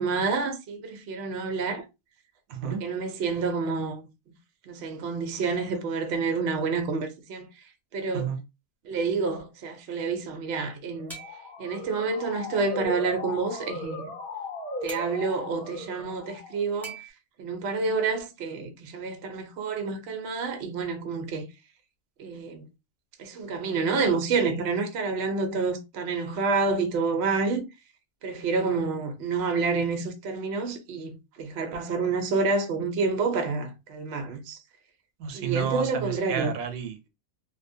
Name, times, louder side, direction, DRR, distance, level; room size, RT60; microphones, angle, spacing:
voice 1, 0.0-1.8 2.6-4.0 4.7-7.5 7.9-8.3 8.8-11.2 11.6-14.1 14.8-17.0 17.4-21.5 22.2-22.6 23.2-27.7 28.2-34.6 35.3-36.5, right 4 dB, 60° right, 0.8 m, -28 dB
voice 2, 2.5-2.8 8.1-8.4 35.2-37.1, right 8 dB, 85° right, 1.0 m, -31 dB
Motor vehicle (road) / Siren, 10.9-16.7, left 1 dB, 85° left, 1.2 m, -37 dB
sound 1, 11.1-11.6 14.9-15.1 16.8-17.1, right 4 dB, ahead, 0.7 m, -41 dB
2.6 x 2.2 x 2.6 m
omnidirectional pair, 1.4 m